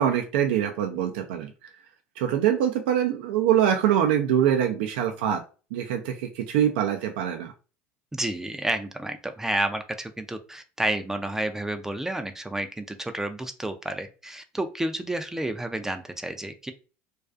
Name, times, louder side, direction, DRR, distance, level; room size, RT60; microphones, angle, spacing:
voice 1, 0.0-1.5 2.2-5.4 5.7-7.5, right 10 dB, 85° right, 4 dB, 0.4 m, -24 dB
voice 2, 8.1-16.7, right 1 dB, 10° right, 7 dB, 0.3 m, -30 dB
2.3 x 2.3 x 2.4 m, 0.34 s
supercardioid pair, 95°, 6 cm